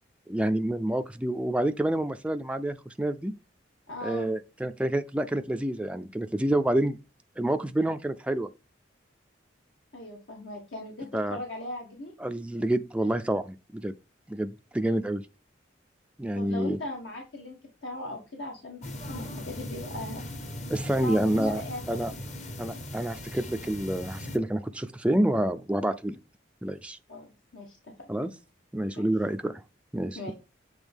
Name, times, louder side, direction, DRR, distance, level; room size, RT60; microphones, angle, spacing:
voice 1, 0.3-3.3 4.0-7.0 7.4-8.5 11.1-11.4 12.2-13.9 14.3-15.2 16.2-16.8 20.7-21.6 21.9-22.1 22.6-26.2 26.6-27.0 28.1-28.3 28.7-29.6 29.9-30.3, right 1 dB, 5° right, 0.3 m, -28 dB
voice 2, 3.9-4.3 9.9-12.1 16.3-17.6 17.8-20.2 21.0-22.2 27.1-28.1 28.9-29.1 30.1-30.3, left 1 dB, 75° left, 1.5 m, -39 dB
sound 1, 18.8-24.4, left 1 dB, 40° left, 0.9 m, -39 dB
8.1 x 3.5 x 3.5 m
head